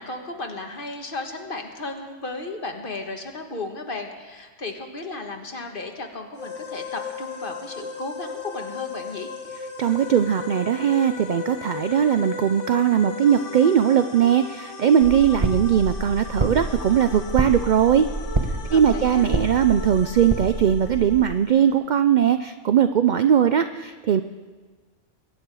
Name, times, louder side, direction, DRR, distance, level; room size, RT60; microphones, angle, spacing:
voice 1, 0.0-9.3 18.7-19.2, left 2 dB, 45° left, 3 dB, 1.6 m, -34 dB
sound 1, 6.4-21.7, left 5 dB, 75° left, 1.6 m, -37 dB
voice 2, 9.8-18.1 18.7-24.2, right 9 dB, 60° right, 10 dB, 0.4 m, -20 dB
sound 2, 15.0-21.2, right 2 dB, 25° right, 1.0 m, -28 dB
22.5 x 9.6 x 4.7 m, 1.4 s
omnidirectional pair, 1.2 m